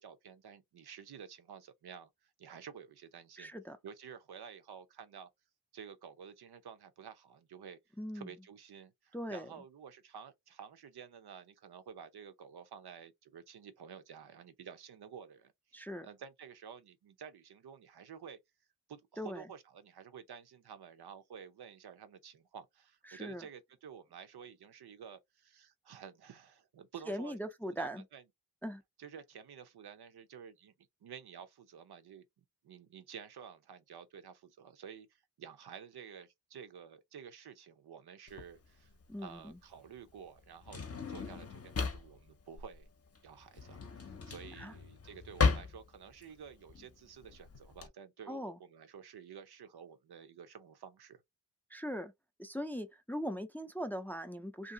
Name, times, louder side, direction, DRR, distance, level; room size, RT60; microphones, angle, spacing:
voice 1, 0.0-3.5 3.8-5.3 5.7-7.8 8.1-18.4 18.9-27.4 27.6-28.2 29.0-30.7 31.0-38.9 39.2-42.9 43.2-51.2, right 7 dB, 85° right, 0.7 m, -51 dB
voice 2, 3.4-3.8 8.0-8.3 9.1-9.5 15.7-16.1 19.2-19.4 23.1-23.4 27.1-28.0 28.6-28.8 39.1-39.6 44.6-44.7 48.3-48.6 51.7-52.1 52.4-54.7, equal, 5° left, 0.3 m, -40 dB
Drawer open or close, 38.3-47.9, left 4 dB, 40° left, 0.6 m, -36 dB
2.8 x 2.6 x 2.6 m
wide cardioid pair, 120°, 38 cm